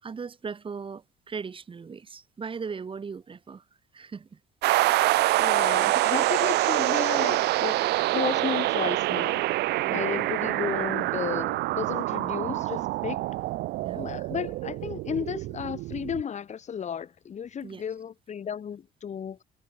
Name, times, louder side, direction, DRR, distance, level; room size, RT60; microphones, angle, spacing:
voice 1, 0.0-3.7 3.9-4.4 9.8-10.3 11.0-11.1 13.8-14.0 17.6-17.8, right 5 dB, 30° right, 4.2 m, -38 dB
sound 1, 4.6-16.2, right 18 dB, 80° right, 1.1 m, -26 dB
voice 2, 5.4-9.4 9.9-13.2 13.9-19.4, left 8 dB, 45° left, 5.4 m, -33 dB
cardioid pair, 110°, 17 cm